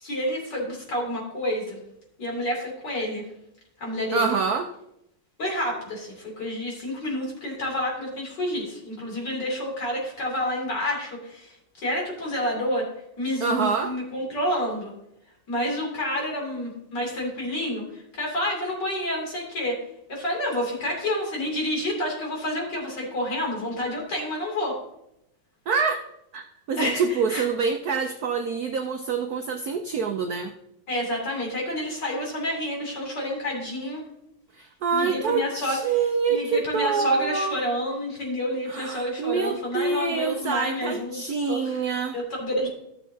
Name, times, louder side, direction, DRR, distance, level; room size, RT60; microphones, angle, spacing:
voice 1, 0.0-1.8 2.2-3.2 3.8-4.4 5.4-12.9 13.2-14.9 15.5-19.8 20.1-24.8 26.8-27.5 30.9-34.0 34.9-42.8, left 1 dB, 50° left, -1 dB, 3.4 m, -29 dB
voice 2, 4.1-4.7 13.4-13.9 25.7-26.0 26.3-30.5 34.6-37.6 38.7-42.2, right 5 dB, 80° right, 5 dB, 0.8 m, -26 dB
14.0 x 7.0 x 2.7 m, 0.81 s
omnidirectional pair, 2.4 m